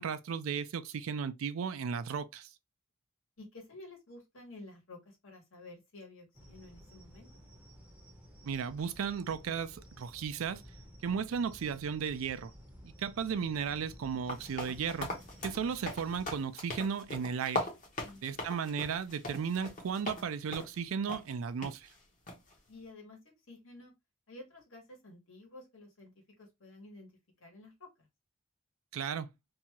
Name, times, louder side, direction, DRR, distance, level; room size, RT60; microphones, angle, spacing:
voice 1, 0.0-2.5 8.4-10.6 11.0-12.5 12.8-15.1 15.4-17.7 18.2-21.9 28.9-29.3, right 6 dB, 85° right, 0.4 m, -35 dB
voice 2, 3.4-7.3 18.0-18.6 22.7-23.2 23.5-23.9 24.3-26.1 26.4-27.1 27.4-28.1, left 2 dB, 75° left, 1.2 m, -52 dB
sound 1, 6.3-16.3, equal, 5° right, 0.6 m, -54 dB
sound 2, 14.3-20.3 20.5-20.8 21.1-21.2 21.6-21.7 22.3-22.5, left 1 dB, 40° left, 0.8 m, -40 dB
2.7 x 2.3 x 2.9 m
head